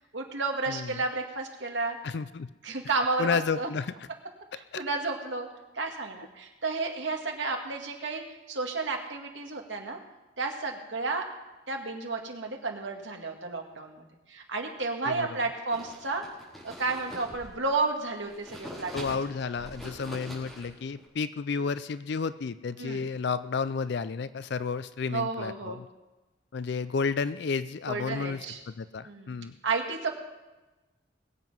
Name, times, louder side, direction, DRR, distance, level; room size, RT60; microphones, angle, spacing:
voice 1, 0.1-2.0 2.6-3.7 4.8-5.5 5.7-8.2 8.5-10.0 10.4-11.3 11.7-14.0 14.3-16.2 16.6-19.2 22.8-23.1 25.1-25.8 27.9-28.6 29.0-29.3 29.6-30.1, right 3 dB, 75° right, 2 dB, 2.0 m, -32 dB
voice 2, 0.7-1.0 2.0-2.5 3.2-4.0 4.7-4.8 15.1-15.3 18.9-25.9 26.5-29.6, left 5 dB, 60° left, 14 dB, 0.4 m, -32 dB
sound 1, 15.7-17.9 18.2-21.0, equal, ahead, 4.5 m, -43 dB
21.0 x 7.9 x 5.5 m, 1.1 s
head